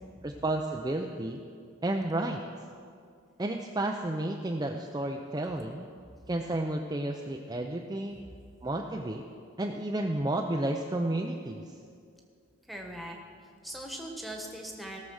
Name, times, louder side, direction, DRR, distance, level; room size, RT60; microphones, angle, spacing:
voice 1, 0.2-1.4 1.8-2.4 3.4-5.9 6.3-8.2 8.6-9.2 9.6-11.6, right 1 dB, 20° right, 2 dB, 0.5 m, -31 dB
voice 2, 12.7-15.0, right 1 dB, ahead, 0 dB, 1.3 m, -41 dB
17.0 x 6.7 x 6.4 m, 2.3 s
head